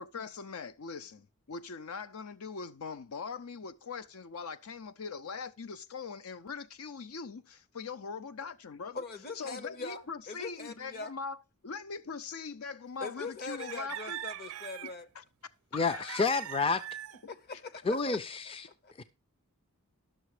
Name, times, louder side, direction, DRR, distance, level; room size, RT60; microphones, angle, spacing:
voice 1, 0.0-9.0 9.3-11.4 11.6-14.2 15.2-15.3 15.7-16.3 17.2-17.3, left 5 dB, 80° left, 0.6 m, -41 dB
voice 2, 8.9-11.1 13.0-15.1 17.3-18.2 18.5-18.6 18.8-18.9, left 3 dB, 45° left, 1.0 m, -42 dB
sound 1, 13.6-15.0 15.8-17.2, right 11 dB, 80° right, 0.5 m, -42 dB
voice 3, 15.7-16.8 17.9-18.7 19.0-19.1, left 4 dB, 25° left, 0.4 m, -29 dB
11.5 x 6.6 x 4.9 m
head